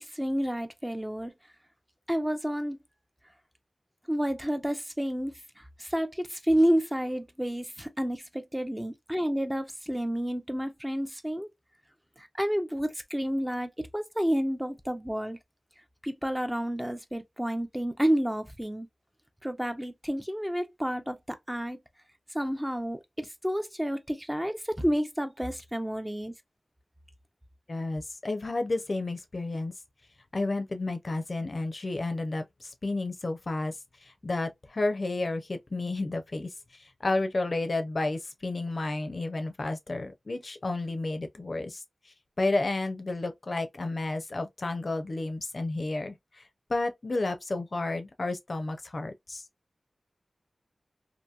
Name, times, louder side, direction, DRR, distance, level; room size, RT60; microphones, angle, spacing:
voice 1, 0.0-1.3 2.1-2.8 4.1-11.5 12.2-15.4 16.0-18.9 19.4-21.8 22.3-26.3, equal, 10° right, 0.5 m, -30 dB
voice 2, 27.7-29.7 30.3-33.8 34.0-36.5 36.8-41.8 42.4-46.4 46.7-49.4, left 2 dB, 50° left, 0.5 m, -31 dB
2.8 x 2.5 x 2.2 m
wide cardioid pair, 85°, 0 cm